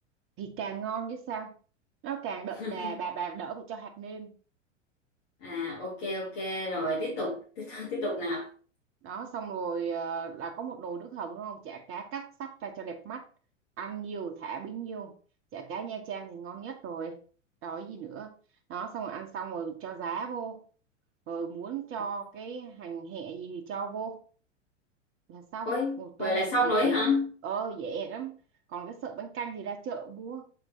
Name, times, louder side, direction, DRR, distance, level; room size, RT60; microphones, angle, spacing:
voice 1, 0.4-1.5 2.0-4.3 6.9-7.2 9.0-13.2 13.8-15.1 15.5-17.2 17.6-18.3 18.7-20.6 21.3-24.2 25.3-27.0 27.4-28.4 28.7-30.5, right 6 dB, 35° right, 1.4 m, -36 dB
voice 2, 2.6-3.0 5.4-8.5 25.7-27.3, left 1 dB, 50° left, 2.3 m, -30 dB
6.5 x 4.5 x 4.1 m
figure-of-eight pair, 90°, 37 cm